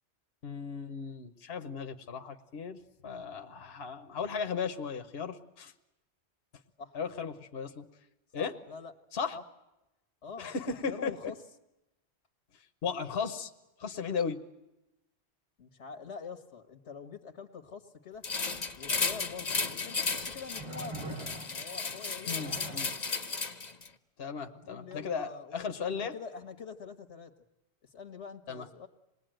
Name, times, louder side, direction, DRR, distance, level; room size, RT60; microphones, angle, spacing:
voice 1, 0.4-5.7 6.9-7.9 8.3-8.5 9.1-9.4 10.4-11.1 12.8-13.5 13.8-14.4 22.3-22.9 24.2-26.1 28.5-28.7, left 5 dB, 65° left, 6 dB, 1.3 m, -36 dB
voice 2, 8.4-8.9 9.3-9.4 10.2-11.4 15.6-18.3 18.8-23.0 24.5-27.3 27.8-28.9, left 5 dB, 85° left, 8 dB, 1.7 m, -46 dB
sound 1, 18.2-23.9, left 4 dB, 40° left, 1.1 m, -34 dB
sound 2, 19.2-19.3 20.5-21.8 22.3-23.0 24.9-25.0, right 2 dB, 30° right, 1.2 m, -43 dB
27.0 x 20.5 x 9.0 m, 0.96 s
omnidirectional pair, 1.1 m